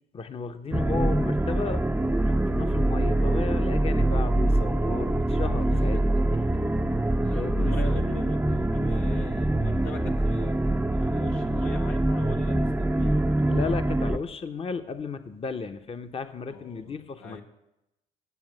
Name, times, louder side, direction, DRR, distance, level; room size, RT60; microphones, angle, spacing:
voice 1, 0.1-6.0 7.4-7.7 13.5-17.4, left 4 dB, 30° left, 9 dB, 0.8 m, -34 dB
sound 1, 0.7-14.2, right 1 dB, 10° right, 0.5 m, -24 dB
voice 2, 7.2-13.2 16.5-17.4, left 4 dB, 85° left, 3 dB, 1.2 m, -41 dB
9.4 x 7.2 x 6.6 m, 0.91 s
hypercardioid pair, 55°, 18 cm